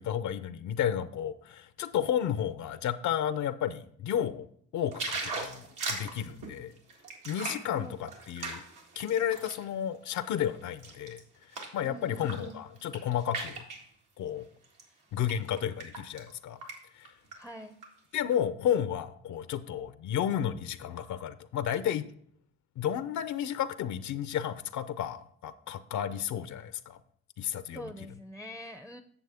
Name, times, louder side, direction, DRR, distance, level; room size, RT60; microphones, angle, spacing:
voice 1, 0.0-4.5 4.7-6.7 7.2-8.6 9.0-11.2 11.7-13.6 14.2-14.5 15.1-16.6 16.9-17.1 18.1-22.1 22.8-27.0 27.4-27.9, left 9 dB, 70° left, 13 dB, 0.6 m, -32 dB
sound 1, 4.9-9.6 10.1-11.8 12.2-12.5 12.8-13.8 14.6-14.8 15.2-16.3 16.6-16.8 17.0-17.9 18.3-18.4, right 3 dB, 85° right, 1.9 m, -39 dB
voice 2, 7.7-8.1 11.8-12.7 17.3-17.8 27.7-29.0, equal, 5° right, 9 dB, 0.5 m, -44 dB
8.1 x 7.2 x 3.4 m, 0.63 s
cardioid pair, 90°, 30 cm